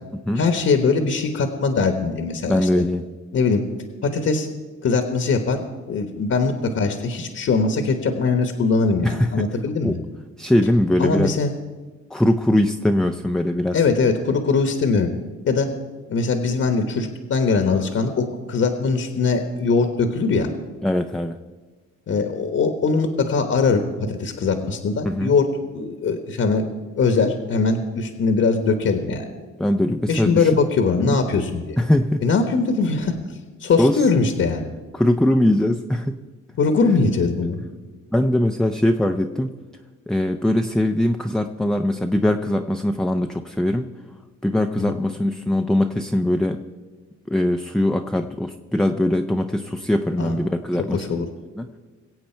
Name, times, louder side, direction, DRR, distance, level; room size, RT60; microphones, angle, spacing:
voice 1, 0.3-2.7 3.3-3.6 4.0-4.5 4.8-5.6 5.9-10.0 11.0-11.5 13.7-15.1 15.5-15.7 16.1-20.5 22.1-25.5 25.7-26.6 27.0-29.3 30.1-31.8 32.2-33.2 33.6-34.7 36.6-37.6 50.2-50.3 50.9-51.3, left 4 dB, 50° left, 6 dB, 1.3 m, -21 dB
voice 2, 2.5-3.1 9.0-9.5 9.8-10.0 10.4-11.3 12.1-13.8 20.8-21.4 25.0-25.3 29.6-30.5 31.1-31.2 31.8-32.2 33.8-34.0 34.9-36.2 38.1-39.5 40.1-43.9 44.4-46.6 47.3-51.2 51.6-51.7, left 1 dB, ahead, 4 dB, 0.6 m, -21 dB
22.5 x 8.0 x 4.5 m, 1.4 s
cardioid pair, 90°, 30 cm